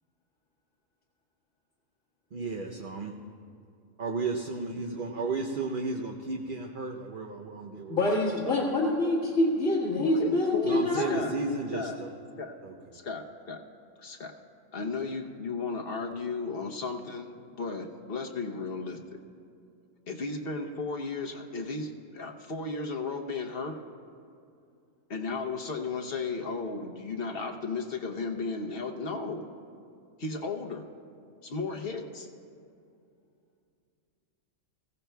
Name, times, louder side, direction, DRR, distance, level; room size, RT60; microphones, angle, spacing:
voice 1, 2.3-3.1 4.0-8.2 10.6-12.1 12.6-13.0, right 3 dB, 50° right, 1 dB, 0.8 m, -34 dB
voice 2, 7.9-11.2, left 2 dB, 80° left, -8 dB, 2.1 m, -26 dB
voice 3, 9.9-11.3 11.7-12.0 12.4-12.5 12.9-13.6 14.0-14.3 14.7-19.0 20.1-23.8 25.1-29.4 30.2-30.8 31.4-32.3, left 4 dB, 50° left, 3 dB, 1.1 m, -35 dB
21.5 x 16.0 x 2.3 m, 2.5 s
omnidirectional pair, 1.3 m